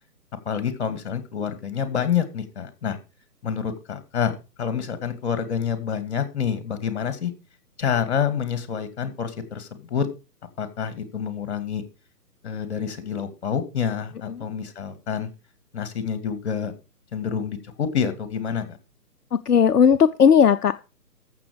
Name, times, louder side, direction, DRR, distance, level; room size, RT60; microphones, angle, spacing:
voice 1, 0.5-3.0 3.4-4.3 4.6-7.3 7.8-10.1 10.6-11.8 12.4-15.3 15.7-16.7 17.1-18.8, left 7 dB, 45° left, 11 dB, 2.3 m, -27 dB
voice 2, 19.3-20.7, left 7 dB, 70° left, 11 dB, 0.7 m, -17 dB
14.5 x 7.1 x 5.0 m, 0.30 s
figure-of-eight pair, 140°, 48 cm